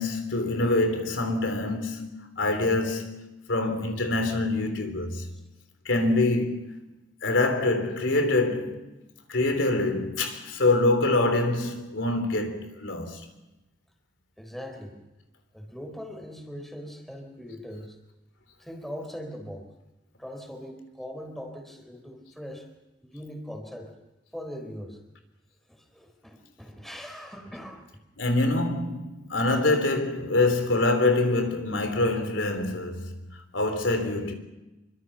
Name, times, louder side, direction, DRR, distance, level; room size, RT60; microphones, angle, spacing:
voice 1, 0.0-3.1 3.5-5.3 5.9-6.7 7.2-8.8 9.3-13.3 28.2-33.2 33.5-34.3, left 2 dB, 85° left, 3.5 m, -25 dB
voice 2, 14.4-15.0 15.5-18.0 18.6-19.7 20.2-22.7 23.0-23.9 24.3-25.0 25.7-28.0, equal, ahead, 4.1 m, -40 dB
26.5 x 24.5 x 5.8 m
head